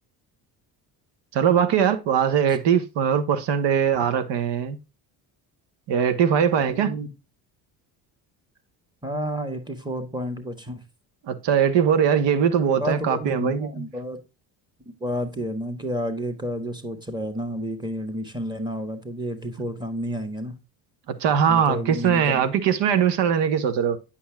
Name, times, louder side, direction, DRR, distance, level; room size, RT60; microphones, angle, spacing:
voice 1, 1.3-4.8 5.9-6.9 11.3-13.7 21.2-24.0, right 8 dB, 65° right, 1.1 m, -21 dB
voice 2, 6.7-7.1 9.0-10.8 12.8-14.2 14.8-20.6 21.5-22.5, equal, 10° right, 1.4 m, -30 dB
8.5 x 6.0 x 2.3 m
supercardioid pair, 80°, 45 cm